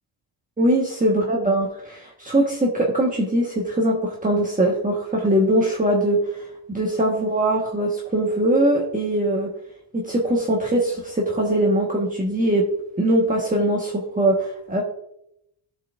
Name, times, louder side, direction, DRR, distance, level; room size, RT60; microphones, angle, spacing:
voice 1, 0.6-6.4 6.7-9.5 9.9-12.7 13.0-14.8, right 1 dB, 15° right, -3 dB, 1.3 m, -21 dB
14.0 x 5.7 x 2.5 m, 0.77 s
wide cardioid pair, 105°, 50 cm